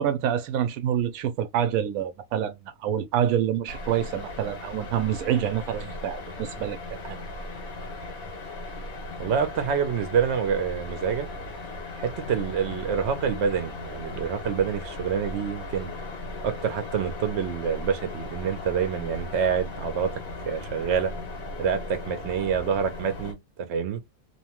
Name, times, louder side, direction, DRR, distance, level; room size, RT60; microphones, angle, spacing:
voice 1, 0.0-7.2, right 9 dB, 90° right, 1.0 m, -27 dB
sound 1, 3.7-23.3, left 2 dB, 85° left, 1.5 m, -37 dB
voice 2, 9.2-11.3 12.0-15.9 16.4-20.2 20.5-21.1 21.6-24.0, right 7 dB, 60° right, 0.9 m, -27 dB
2.9 x 2.2 x 2.9 m
omnidirectional pair, 1.4 m